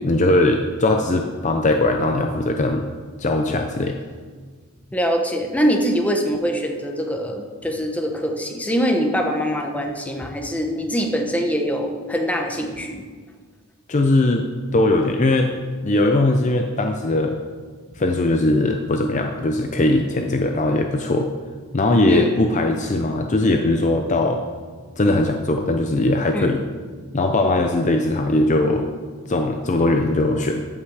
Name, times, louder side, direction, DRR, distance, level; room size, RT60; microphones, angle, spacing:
voice 1, 0.0-2.9 3.2-4.0 13.9-14.5 14.7-15.5 15.8-17.4 18.0-21.3 21.7-24.4 25.0-26.6 27.1-28.9 29.3-30.7, left 2 dB, 35° left, 4 dB, 0.6 m, -20 dB
voice 2, 4.9-13.0 22.1-22.3 26.3-26.5, equal, 5° left, 2 dB, 1.0 m, -23 dB
14.5 x 5.8 x 4.9 m, 1.6 s
head